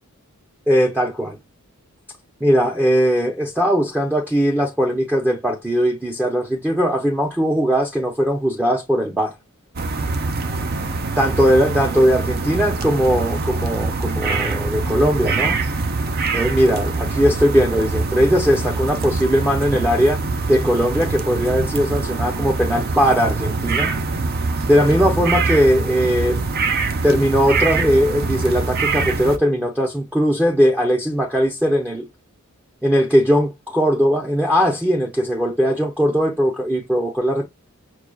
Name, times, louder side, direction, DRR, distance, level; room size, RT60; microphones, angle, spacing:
voice 1, 0.7-1.4 2.4-9.3 11.2-15.6 16.3-23.9 24.7-26.4 27.0-32.1 32.8-37.5, equal, 5° right, 0.6 m, -19 dB
sound 1, 9.8-29.4, right 3 dB, 45° right, 0.6 m, -24 dB
6.1 x 2.2 x 2.3 m
head